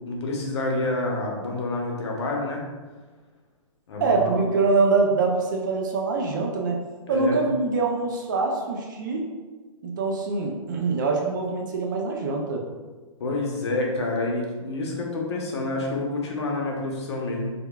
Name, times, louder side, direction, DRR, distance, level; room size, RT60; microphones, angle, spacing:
voice 1, 0.1-2.6 3.9-4.4 7.1-7.4 13.2-17.5, left 2 dB, 55° left, 0 dB, 0.8 m, -28 dB
voice 2, 4.0-9.3 9.8-12.6, right 4 dB, 35° right, 1 dB, 0.4 m, -24 dB
4.8 x 2.2 x 2.3 m, 1.3 s
hypercardioid pair, 165°, 17 cm